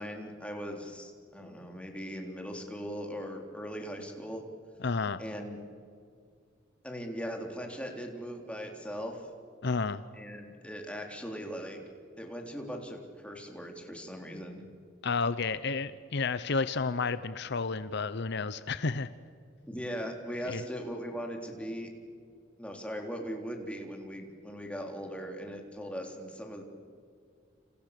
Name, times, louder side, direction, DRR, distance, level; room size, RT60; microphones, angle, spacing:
voice 1, 0.0-4.4 5.2-5.6 6.8-9.2 10.1-11.8 12.2-14.6 19.7-21.9 22.6-26.6, equal, 5° left, 2 dB, 3.8 m, -39 dB
voice 2, 4.8-5.2 9.6-10.0 15.0-19.1 20.5-20.6, left 4 dB, 60° left, 14 dB, 0.8 m, -31 dB
30.0 x 28.0 x 6.8 m, 2.2 s
head